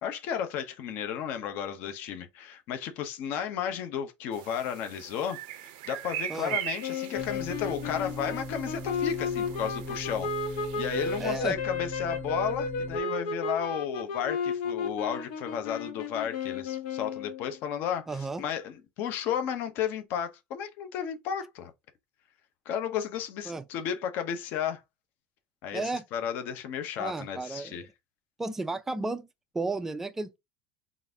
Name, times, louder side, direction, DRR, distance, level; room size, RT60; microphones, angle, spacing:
voice 1, 0.0-21.7 22.7-24.8 25.6-27.9, left 8 dB, 45° left, 0.7 m, -33 dB
sound 1, 4.3-11.4, right 13 dB, 80° right, 0.6 m, -41 dB
sound 2, 6.8-17.6, left 5 dB, 75° left, 0.8 m, -33 dB
sound 3, 7.1-13.0, equal, 20° left, 1.3 m, -40 dB
voice 2, 11.2-11.6 18.1-18.4 23.5-23.6 25.7-26.0 27.0-27.8 28.4-29.3 29.5-30.4, right 3 dB, 10° right, 0.3 m, -33 dB
3.9 x 2.5 x 3.3 m
cardioid pair, 175°, 5 cm